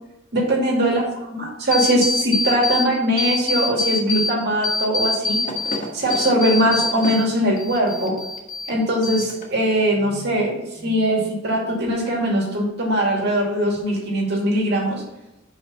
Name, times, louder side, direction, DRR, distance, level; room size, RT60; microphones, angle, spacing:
voice 1, 0.3-5.4 5.9-8.1 8.7-15.0, right 1 dB, 55° right, -1 dB, 2.3 m, -21 dB
sound 1, 1.7-2.9 3.2-4.3 4.6-7.3 7.6-8.7 9.0-9.6, left 3 dB, 40° left, 1.4 m, -24 dB
5.7 x 5.5 x 5.5 m, 0.97 s
head